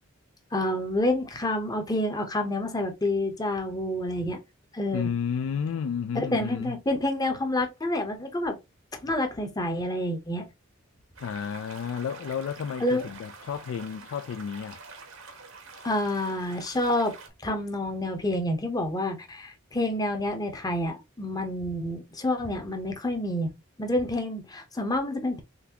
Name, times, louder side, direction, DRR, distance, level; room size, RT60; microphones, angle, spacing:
voice 1, 0.5-4.4 4.7-5.1 6.1-8.6 9.0-10.5 12.8-13.1 15.8-17.1 17.4-23.5 23.8-25.4, left 1 dB, 20° left, 0.7 m, -28 dB
voice 2, 4.9-6.8 11.2-14.8, left 7 dB, 75° left, 0.3 m, -31 dB
sound 1, 11.1-17.3, right 4 dB, 85° right, 1.1 m, -47 dB
3.9 x 3.3 x 2.8 m
head